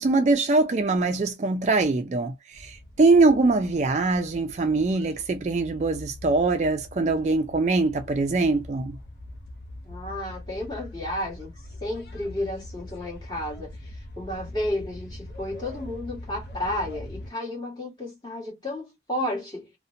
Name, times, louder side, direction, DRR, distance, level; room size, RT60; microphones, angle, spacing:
voice 1, 0.0-9.0, right 3 dB, 40° right, 0.3 m, -23 dB
sound 1, 2.5-17.3, left 1 dB, 65° left, 0.6 m, -42 dB
voice 2, 9.8-11.5 11.8-19.7, left 1 dB, 25° left, 1.3 m, -32 dB
2.7 x 2.1 x 2.4 m
head